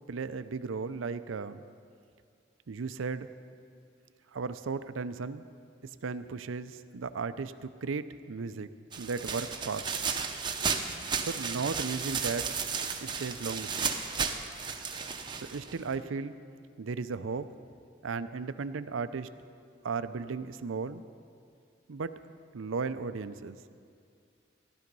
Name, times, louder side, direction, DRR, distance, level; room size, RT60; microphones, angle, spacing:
voice 1, 0.1-1.6 2.7-3.3 4.3-5.5 6.0-8.7 9.0-9.9 11.2-12.5 13.0-14.0 15.3-16.3 16.8-17.5 18.0-19.3 19.8-21.0 21.9-22.1 22.5-23.6, right 4 dB, 90° right, 12 dB, 0.5 m, -35 dB
sound 1, 8.9-15.9, right 6 dB, 25° right, 0.7 m, -34 dB
14.5 x 12.5 x 5.4 m, 2.3 s
head